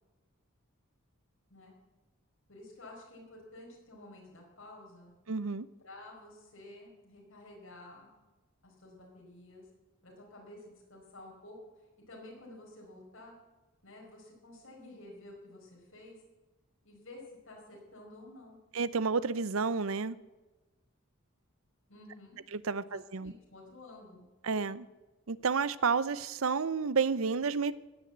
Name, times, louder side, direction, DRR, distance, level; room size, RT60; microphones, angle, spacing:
voice 1, 2.5-5.1 5.8-8.1 8.6-9.6 10.0-11.6 12.1-13.3 13.8-16.2 16.8-18.6 21.9-22.4 22.8-24.3, left 2 dB, 70° left, 4.8 m, -51 dB
voice 2, 5.3-5.7 18.7-20.2 22.5-23.3 24.4-24.9 25.3-27.7, right 5 dB, 75° right, 0.7 m, -30 dB
16.5 x 9.6 x 7.9 m
head